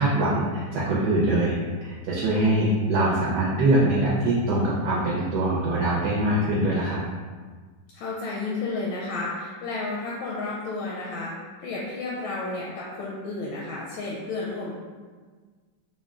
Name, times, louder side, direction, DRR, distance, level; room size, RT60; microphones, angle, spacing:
voice 1, 0.0-7.0, right 1 dB, 70° right, -5 dB, 1.1 m, -23 dB
voice 2, 7.9-11.3 11.6-14.7, left 3 dB, 85° left, -5 dB, 1.3 m, -32 dB
3.8 x 2.1 x 3.5 m, 1.5 s
omnidirectional pair, 2.0 m